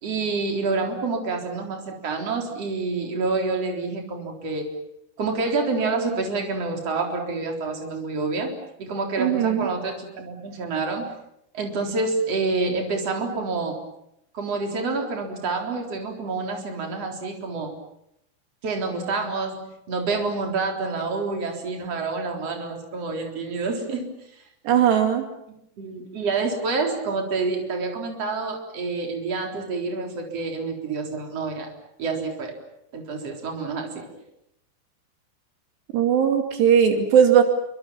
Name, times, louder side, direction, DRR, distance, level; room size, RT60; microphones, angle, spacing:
voice 1, 0.0-4.7 5.2-8.5 8.8-11.1 11.5-13.8 14.3-17.7 18.6-24.1 25.8-31.7 32.0-32.6 32.9-34.1, right 3 dB, 35° right, 2 dB, 4.7 m, -28 dB
voice 2, 9.2-9.7 24.7-25.2 35.9-37.4, right 8 dB, 80° right, 5 dB, 4.7 m, -18 dB
28.5 x 25.5 x 7.3 m, 0.80 s
omnidirectional pair, 4.8 m